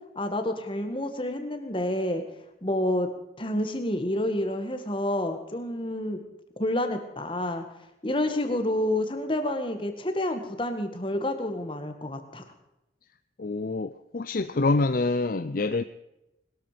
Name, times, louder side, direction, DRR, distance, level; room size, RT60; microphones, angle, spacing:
voice 1, 0.2-2.2 2.6-3.1 3.4-6.2 6.6-7.6 8.0-12.4, left 1 dB, 25° left, 1.9 m, -29 dB
voice 2, 13.4-15.8, left 3 dB, 50° left, 0.5 m, -26 dB
21.0 x 13.5 x 5.1 m
head